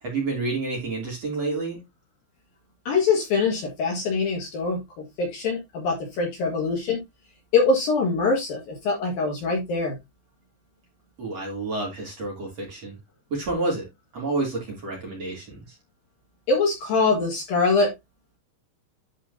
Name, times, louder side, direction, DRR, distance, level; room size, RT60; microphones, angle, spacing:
voice 1, 0.0-1.8 11.2-13.0 13.3-13.9 14.1-15.6, right 3 dB, 35° right, 3.7 m, -29 dB
voice 2, 2.9-7.0 7.5-10.0 16.5-17.9, left 4 dB, 55° left, 3.2 m, -23 dB
11.5 x 4.9 x 2.8 m
omnidirectional pair, 5.5 m